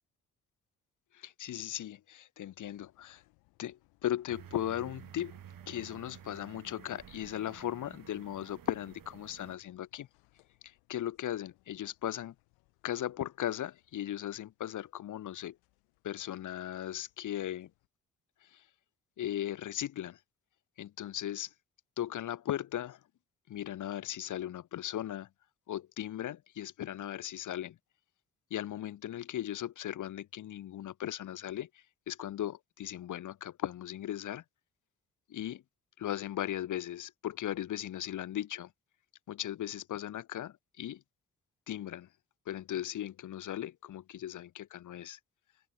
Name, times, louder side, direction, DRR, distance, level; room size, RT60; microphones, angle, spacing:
voice 1, 1.1-3.2 3.6-5.3 5.7-10.1 10.6-12.3 12.8-15.6 16.0-17.7 18.5-18.6 19.2-20.2 20.8-21.5 22.0-23.0 23.5-25.3 25.7-27.8 28.5-31.7 32.1-34.4 35.3-35.6 36.0-38.7 39.3-41.0 41.7-42.1 42.5-45.2, left 12 dB, 55° left, 0.9 m, -37 dB
sound 1, 2.6-17.9, left 25 dB, 80° left, 2.7 m, -70 dB
sound 2, 4.3-9.6, right 10 dB, 60° right, 4.0 m, -52 dB
hypercardioid pair, 45°, 37 cm